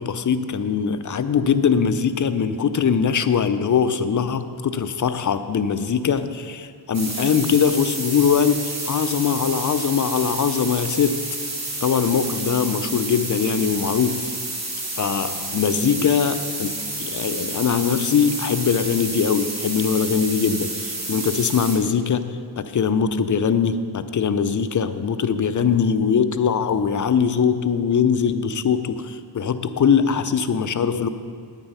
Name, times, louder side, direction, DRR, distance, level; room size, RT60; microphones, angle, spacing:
voice 1, 0.0-11.2 11.8-14.2 14.9-31.1, left 6 dB, 45° left, 11 dB, 0.5 m, -21 dB
sound 1, 6.9-21.8, right 2 dB, 35° right, 2.2 m, -30 dB
9.1 x 8.9 x 5.6 m, 2.1 s
wide cardioid pair, 90°, 43 cm